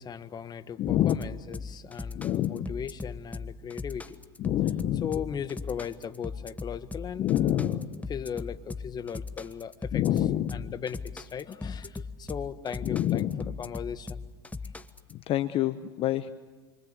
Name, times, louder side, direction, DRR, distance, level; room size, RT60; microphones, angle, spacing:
voice 1, 0.0-4.2 4.9-14.2 14.6-14.7, left 8 dB, 30° left, 12 dB, 1.4 m, -38 dB
voice 2, 0.8-1.1 2.2-2.7 4.4-5.1 7.2-7.8 9.9-10.6 12.9-13.3 15.3-16.3, left 12 dB, 45° left, 11 dB, 1.1 m, -26 dB
sound 1, 0.9-15.1, left 3 dB, 10° left, 1.3 m, -39 dB
29.5 x 24.5 x 8.2 m, 1.2 s
hypercardioid pair, 95°, 13 cm